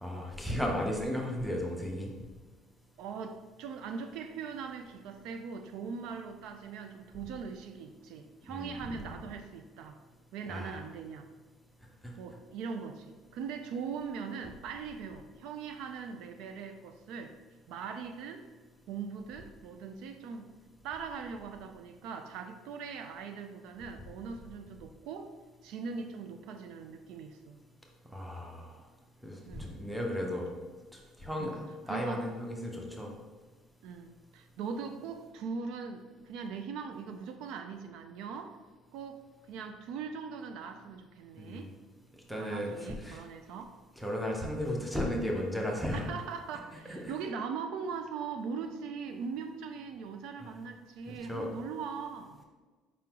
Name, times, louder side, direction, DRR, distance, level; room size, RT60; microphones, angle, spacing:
voice 1, 0.0-2.1 8.5-8.8 10.5-10.8 12.0-12.1 28.1-28.8 29.2-30.5 30.9-33.1 41.4-41.7 42.3-43.2 44.0-46.1 46.9-47.2 50.4-50.5 51.1-51.5, left 1 dB, ahead, -1 dB, 0.6 m, -35 dB
voice 2, 3.0-10.0 10.3-11.3 12.2-17.3 17.7-18.5 18.9-20.5 20.8-25.3 25.6-27.6 29.5-29.7 31.4-31.6 31.9-32.2 33.8-38.6 38.9-39.2 39.5-41.7 42.3-43.7 44.8-44.9 45.9-52.4, right 5 dB, 65° right, 7 dB, 0.3 m, -40 dB
4.9 x 3.7 x 2.9 m, 1.3 s
cardioid pair, 165°, 0 cm